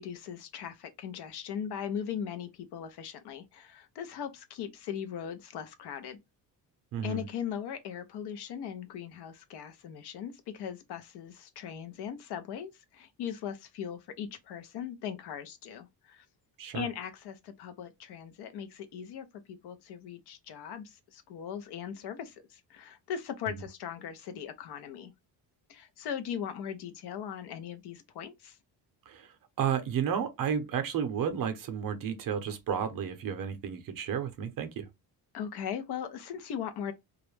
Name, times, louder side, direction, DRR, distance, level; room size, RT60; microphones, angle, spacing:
voice 1, 0.0-6.2 7.0-16.2 16.7-25.1 25.7-28.6 35.3-36.9, left 8 dB, 65° left, 0.6 m, -39 dB
voice 2, 6.9-7.2 16.6-16.9 23.5-23.6 29.1-29.3 29.6-34.9, right 8 dB, 50° right, 0.6 m, -32 dB
2.4 x 2.1 x 3.0 m
cardioid pair, 165°, 43 cm